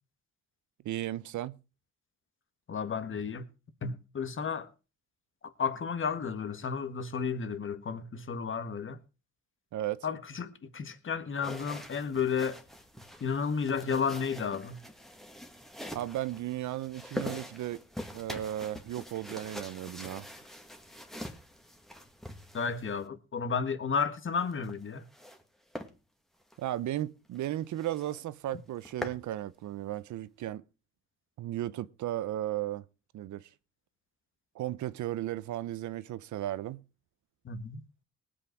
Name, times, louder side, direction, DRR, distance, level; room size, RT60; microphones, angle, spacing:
voice 1, 0.8-1.6 9.7-10.1 15.9-17.8 18.1-20.3 26.6-30.6 31.4-32.8 33.1-33.5 34.5-36.8, right 13 dB, 70° right, 0.8 m, -35 dB
voice 2, 2.7-3.4 3.8-4.7 5.6-9.0 10.0-12.6 13.2-14.8 22.5-25.0 37.5-37.8, left 6 dB, 40° left, 1.7 m, -32 dB
sound 1, 11.4-23.1 24.4-25.4 25.7-25.9 26.4-26.6 27.0-27.1 27.4-27.5 27.8-28.2 28.6-29.2, equal, ahead, 2.1 m, -44 dB
19.0 x 8.5 x 4.6 m
cardioid pair, 90°, 30 cm